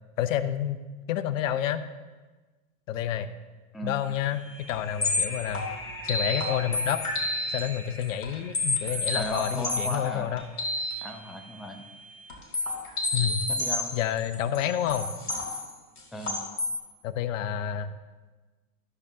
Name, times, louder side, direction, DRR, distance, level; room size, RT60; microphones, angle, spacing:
voice 1, 0.2-0.8 1.1-1.8 2.9-3.3 3.8-5.7 6.0-7.0 7.5-10.4 13.1-13.5 13.9-15.1 17.0-17.9, left 10 dB, 60° left, 13 dB, 0.7 m, -29 dB
sound 1, 4.0-13.3, left 1 dB, 30° left, 3.0 m, -46 dB
sound 2, 4.2-4.3 4.7-4.8 5.0-7.7 8.0-10.9 12.3-16.8, left 2 dB, 90° left, 2.1 m, -30 dB
voice 2, 9.1-10.3 11.0-11.8 13.5-14.0 16.1-16.4, left 1 dB, ahead, 3 dB, 0.4 m, -36 dB
13.0 x 6.6 x 2.7 m, 1.3 s
hypercardioid pair, 95°, 44 cm